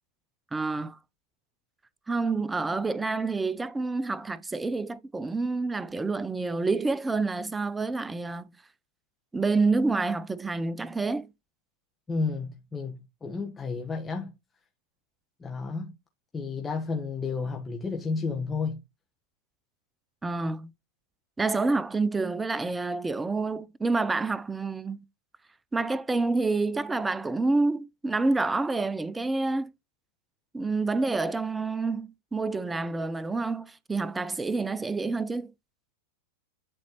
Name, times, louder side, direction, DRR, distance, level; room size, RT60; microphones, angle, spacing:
voice 1, 0.5-1.0 2.1-8.5 9.3-11.3 20.2-20.7 21.4-25.1 25.7-29.7 30.5-35.5, right 3 dB, 10° right, 0.5 m, -28 dB
voice 2, 12.1-14.3 15.4-15.9 16.3-18.8, left 4 dB, 15° left, 1.2 m, -32 dB
10.5 x 4.2 x 3.0 m
hypercardioid pair, 115°, 0 cm